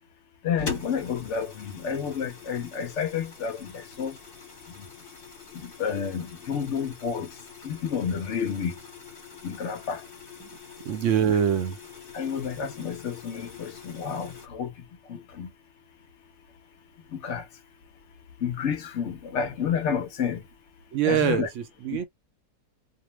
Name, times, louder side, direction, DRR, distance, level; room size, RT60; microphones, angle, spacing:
voice 1, 0.4-4.2 4.7-4.9 5.5-8.8 9.4-10.0 12.1-15.5 17.1-17.5 18.4-20.4 21.0-21.5 21.9-22.0, left 7 dB, 60° left, 0.8 m, -30 dB
sound 1, 0.6-14.5, left 5 dB, 40° left, 1.1 m, -43 dB
voice 2, 10.8-11.8 20.9-22.0, right 8 dB, 70° right, 0.8 m, -24 dB
2.8 x 2.0 x 3.0 m
omnidirectional pair, 1.7 m